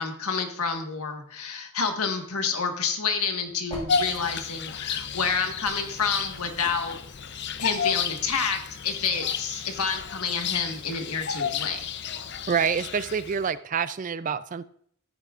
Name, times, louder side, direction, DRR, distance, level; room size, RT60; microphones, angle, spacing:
voice 1, 0.0-7.0 7.6-11.9, left 5 dB, 80° left, 4 dB, 1.5 m, -29 dB
sound 1, 3.0-8.1, left 1 dB, 25° left, 2.3 m, -47 dB
Bird vocalization bird call bird song, 3.9-13.5, left 6 dB, 50° left, 0.6 m, -32 dB
voice 2, 12.5-14.6, right 6 dB, 35° right, 15 dB, 0.3 m, -27 dB
13.5 x 10.0 x 2.4 m, 0.63 s
head